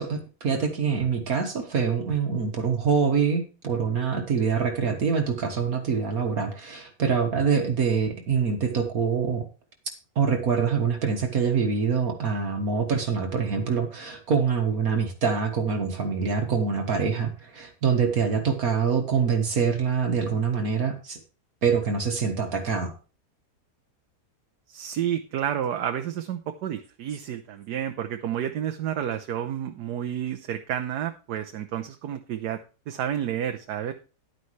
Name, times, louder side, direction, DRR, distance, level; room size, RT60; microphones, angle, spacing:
voice 1, 0.0-9.5 10.2-21.2 21.6-22.9, right 6 dB, 65° right, 4 dB, 1.8 m, -25 dB
voice 2, 24.7-32.6 32.9-33.9, right 10 dB, 80° right, 7 dB, 1.3 m, -30 dB
10.5 x 9.7 x 3.2 m, 0.34 s
omnidirectional pair, 1.7 m